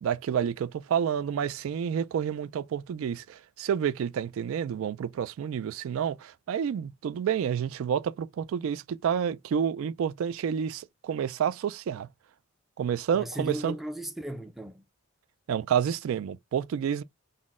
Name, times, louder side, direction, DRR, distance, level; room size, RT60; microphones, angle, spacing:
voice 1, 0.0-12.1 12.8-13.7 15.5-17.0, right 8 dB, 70° right, 0.3 m, -29 dB
voice 2, 13.1-14.8, right 1 dB, ahead, 0.4 m, -36 dB
4.0 x 2.1 x 3.5 m
head